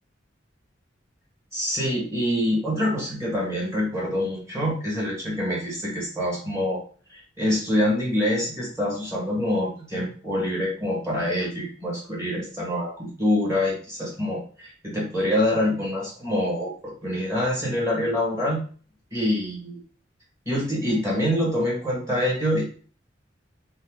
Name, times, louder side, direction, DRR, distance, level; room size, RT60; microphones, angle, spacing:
voice 1, 1.5-6.8 7.1-18.6 19.1-19.8 20.4-22.7, left 1 dB, 15° right, -4 dB, 1.3 m, -25 dB
2.7 x 2.3 x 3.5 m, 0.41 s
head